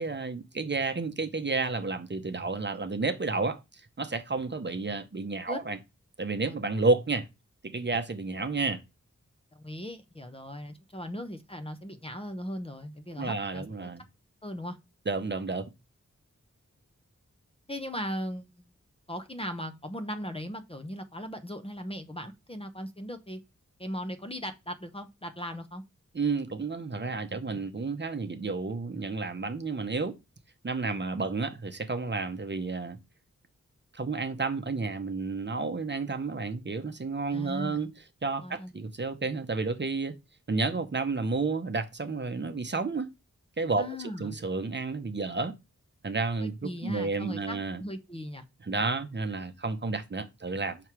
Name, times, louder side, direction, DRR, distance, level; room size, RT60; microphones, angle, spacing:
voice 1, 0.0-3.6 4.0-5.8 6.2-7.3 7.6-8.8 13.2-14.0 15.1-15.6 26.1-30.2 30.6-33.0 33.9-37.9 38.2-40.2 40.5-43.1 43.6-45.6 46.0-47.8 48.6-50.8, right 3 dB, 35° right, 0.8 m, -31 dB
voice 2, 9.5-13.9 14.4-14.8 17.7-18.7 19.1-23.4 23.8-25.8 37.3-37.8 38.4-38.7 43.8-44.4 46.4-48.4, equal, 20° left, 0.7 m, -38 dB
5.8 x 3.2 x 5.8 m
wide cardioid pair, 95°, 30 cm